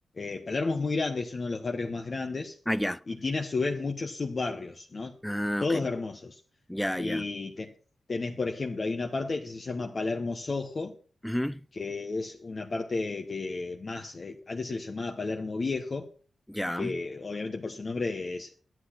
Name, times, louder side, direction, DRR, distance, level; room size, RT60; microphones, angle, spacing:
voice 1, 0.2-2.6 3.1-5.1 5.6-6.4 7.0-7.7 8.1-10.9 11.7-16.0 16.7-18.6, left 3 dB, 45° left, 1.1 m, -32 dB
voice 2, 2.7-3.0 5.2-5.9 6.7-7.3 11.2-11.6 16.5-16.9, equal, 5° left, 0.5 m, -30 dB
11.0 x 8.1 x 5.8 m
cardioid pair, 65°, 0 cm